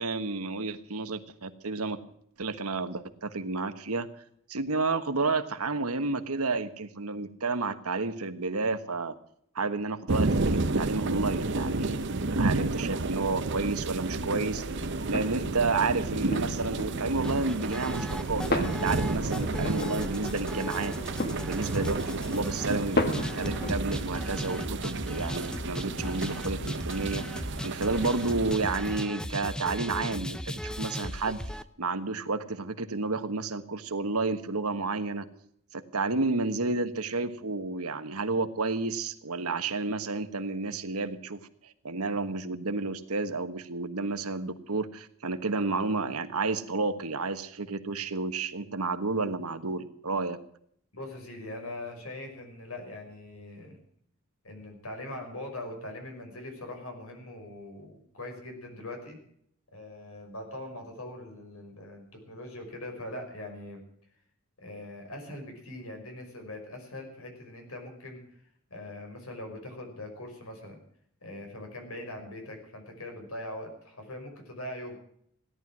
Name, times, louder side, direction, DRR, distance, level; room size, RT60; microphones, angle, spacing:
voice 1, 0.0-2.0 2.4-4.1 4.5-9.1 9.5-12.0 12.3-14.8 15.1-20.9 21.4-31.4 31.8-35.3 35.7-41.4 41.8-50.4, right 3 dB, 90° right, 10 dB, 1.4 m, -31 dB
sound 1, 10.1-29.0, right 2 dB, 55° right, 0.8 m, -32 dB
sound 2, 14.1-27.5, left 1 dB, 45° left, 1.5 m, -37 dB
Gated Beat and Synth, 17.2-31.6, equal, 5° left, 0.5 m, -37 dB
voice 2, 50.9-53.8 54.4-59.2 59.7-63.8 64.6-68.2 68.7-70.8 71.2-74.9, left 1 dB, 80° left, 3 dB, 5.5 m, -41 dB
17.0 x 11.5 x 6.1 m, 0.68 s
head